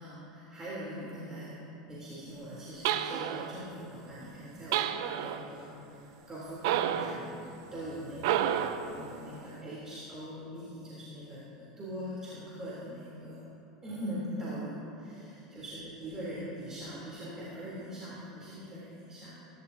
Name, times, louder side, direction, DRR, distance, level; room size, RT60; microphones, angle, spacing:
voice 1, 0.0-13.4 13.8-19.4, equal, 20° right, -8 dB, 3.6 m, -42 dB
sound 1, 2.8-3.6 4.7-5.5 6.6-7.2 8.2-8.9, right 10 dB, 60° right, 0.6 m, -30 dB
17.0 x 16.5 x 2.9 m, 2.9 s
figure-of-eight pair, 80°, 3 cm